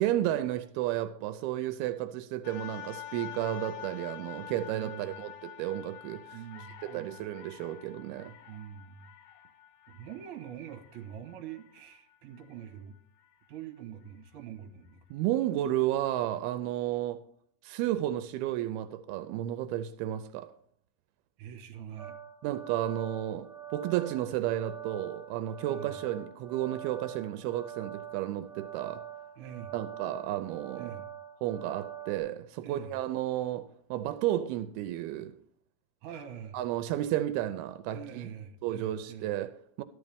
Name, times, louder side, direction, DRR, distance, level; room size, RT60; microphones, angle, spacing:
voice 1, 0.0-6.4 6.8-8.3 15.1-17.2 17.6-20.5 22.4-29.0 29.7-30.9 31.4-35.3 36.5-38.2 38.6-39.8, right 13 dB, 85° right, 2.5 m, -32 dB
sound 1, 2.4-12.6 13.2-13.3, left 11 dB, 90° left, 3.2 m, -47 dB
voice 2, 4.7-5.3 6.3-7.2 8.5-9.1 9.9-13.0 13.5-15.0 21.4-22.2 25.7-26.0 29.4-29.7 30.8-31.1 32.6-32.9 36.0-36.6 37.9-39.3, right 9 dB, 65° right, 2.4 m, -44 dB
sound 2, 22.0-32.2, right 10 dB, 25° left, 5.1 m, -44 dB
13.5 x 11.0 x 3.5 m
omnidirectional pair, 4.4 m